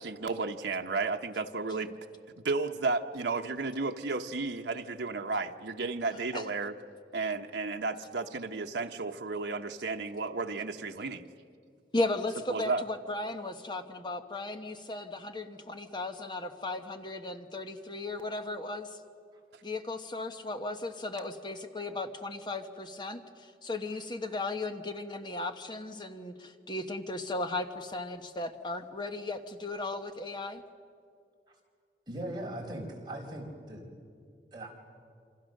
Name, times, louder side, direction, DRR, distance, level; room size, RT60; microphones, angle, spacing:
voice 1, 0.0-2.0 2.4-6.7 7.1-11.3 12.5-12.8, right 3 dB, 85° right, 4 dB, 0.9 m, -33 dB
voice 2, 11.9-19.0 19.6-30.6, left 2 dB, 25° left, 7 dB, 1.1 m, -36 dB
voice 3, 32.1-33.8 34.5-34.7, right 1 dB, 25° right, -1 dB, 4.3 m, -39 dB
28.0 x 26.0 x 6.5 m, 2.3 s
head